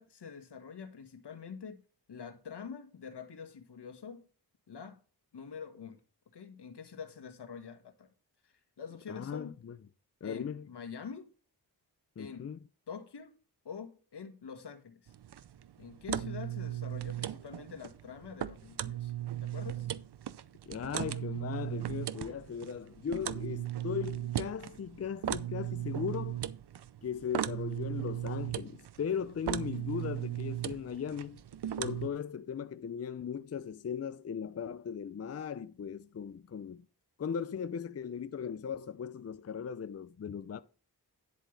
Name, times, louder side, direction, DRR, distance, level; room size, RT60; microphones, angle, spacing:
voice 1, 0.0-4.2 4.7-5.0 5.3-6.0 6.3-8.1 8.4-9.5 10.2-11.3 12.2-12.5 12.9-13.3 13.6-15.1 15.8-19.1 19.4-19.9, left 6 dB, 80° left, 1.6 m, -46 dB
voice 2, 9.1-9.7 10.2-10.7 12.2-12.6 20.7-26.4 27.0-31.4 31.8-36.8 37.2-40.6, left 7 dB, 40° left, 0.5 m, -38 dB
sound 1, 15.1-32.1, right 12 dB, 75° right, 0.7 m, -37 dB
10.5 x 7.6 x 3.3 m
wide cardioid pair, 85°, 40 cm